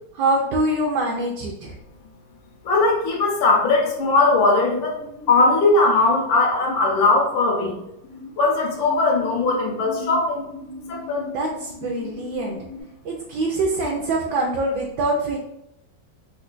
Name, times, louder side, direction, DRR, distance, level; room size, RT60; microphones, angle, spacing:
voice 1, 0.1-1.7 11.3-12.6 13.0-15.4, right 2 dB, 75° right, -1 dB, 1.1 m, -24 dB
voice 2, 2.6-5.0 5.3-7.8 8.4-10.5 10.9-11.3, left 3 dB, 85° left, -1 dB, 1.6 m, -19 dB
sound 1, 5.0-5.5 7.3-8.3 8.7-12.8, left 2 dB, 70° left, 0.7 m, -38 dB
4.4 x 2.2 x 2.5 m, 0.82 s
omnidirectional pair, 2.0 m